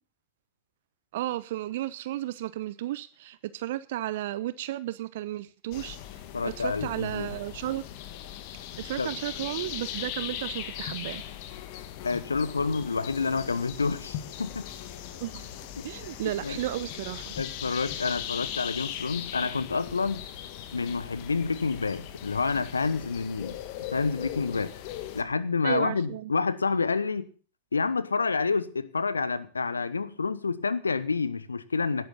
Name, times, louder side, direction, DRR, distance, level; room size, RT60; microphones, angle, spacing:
voice 1, 1.1-6.0 6.4-7.8 8.8-11.2 15.2-15.4 15.8-17.3 25.6-26.3, right 14 dB, 55° right, 0.7 m, -33 dB
sound 1, 5.7-25.2, left 11 dB, 45° left, 1.9 m, -39 dB
voice 2, 6.3-7.3 9.0-9.1 12.0-14.7 15.8-15.9 16.4-16.6 17.4-20.2 20.7-23.6 23.9-24.7 25.1-27.3 27.7-32.1, left 4 dB, 75° left, 1.1 m, -28 dB
18.5 x 11.5 x 4.0 m
figure-of-eight pair, 90°, 0 cm